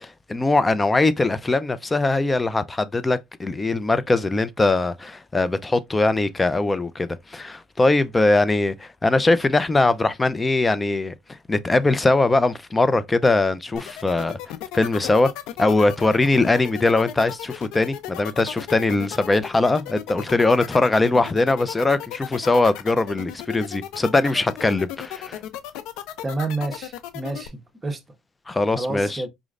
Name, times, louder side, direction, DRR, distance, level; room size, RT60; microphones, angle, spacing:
voice 1, 0.0-11.1 11.5-14.4 14.7-15.3 15.6-25.4 28.5-29.2, left 2 dB, 15° left, 0.5 m, -21 dB
sound 1, 13.7-27.5, left 12 dB, 75° left, 0.5 m, -35 dB
voice 2, 26.2-28.0 28.7-29.3, right 2 dB, 20° right, 1.1 m, -29 dB
5.0 x 3.1 x 2.5 m
cardioid pair, 105°, 0 cm